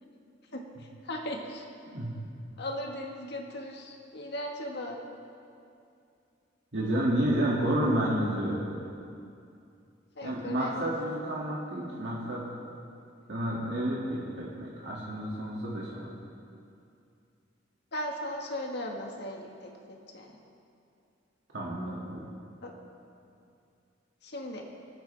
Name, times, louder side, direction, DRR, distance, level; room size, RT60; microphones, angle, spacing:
voice 1, 0.5-1.6 2.6-5.0 10.2-10.9 17.9-20.3 22.6-22.7 24.2-24.6, left 1 dB, 60° left, 1 dB, 1.7 m, -37 dB
voice 2, 6.7-8.7 10.2-12.5 13.3-16.1 21.5-22.3, right 1 dB, 65° right, -6 dB, 2.3 m, -30 dB
27.0 x 9.6 x 3.5 m, 2.5 s
head